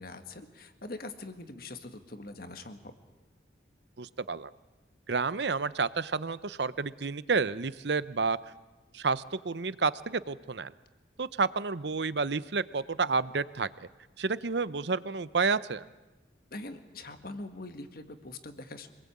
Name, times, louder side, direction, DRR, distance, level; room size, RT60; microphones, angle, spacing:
voice 1, 0.0-2.8 16.5-18.9, left 2 dB, 55° left, 8 dB, 1.8 m, -43 dB
voice 2, 4.0-4.5 5.1-8.4 8.9-10.7 11.2-13.9 14.2-15.8, right 4 dB, 70° right, 16 dB, 0.8 m, -30 dB
26.5 x 20.0 x 8.7 m, 1.1 s
head